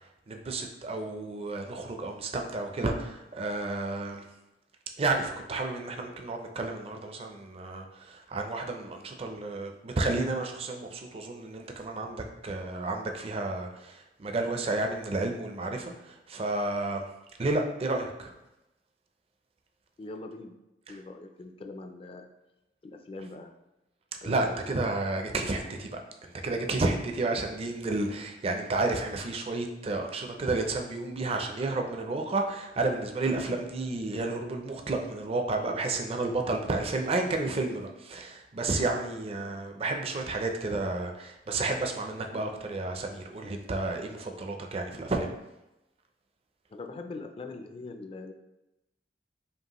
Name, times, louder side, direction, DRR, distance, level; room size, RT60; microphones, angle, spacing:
voice 1, 0.3-4.3 5.0-17.0 17.4-18.3 20.9-21.0 24.2-45.3, right 2 dB, 35° right, 4 dB, 0.4 m, -31 dB
voice 2, 20.0-20.5 20.9-22.3 22.8-23.5 24.2-24.7 33.4-33.6 46.7-48.3, left 3 dB, 30° left, 6 dB, 0.3 m, -42 dB
5.2 x 2.4 x 2.9 m, 0.93 s
head